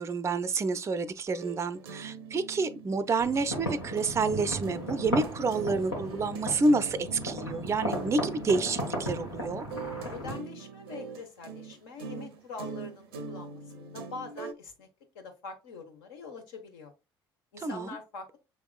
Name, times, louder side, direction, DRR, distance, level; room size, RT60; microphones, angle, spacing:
voice 1, 0.0-9.6 17.6-17.9, right 3 dB, 20° right, 0.4 m, -29 dB
sound 1, 1.3-4.1 4.4-14.5, right 5 dB, 75° right, 0.5 m, -43 dB
sound 2, 3.2-10.3, equal, 85° left, 1.3 m, -35 dB
voice 2, 10.1-14.9 15.1-16.9 17.5-18.4, left 4 dB, 70° left, 1.1 m, -44 dB
6.1 x 3.5 x 2.3 m
figure-of-eight pair, 55°, 13 cm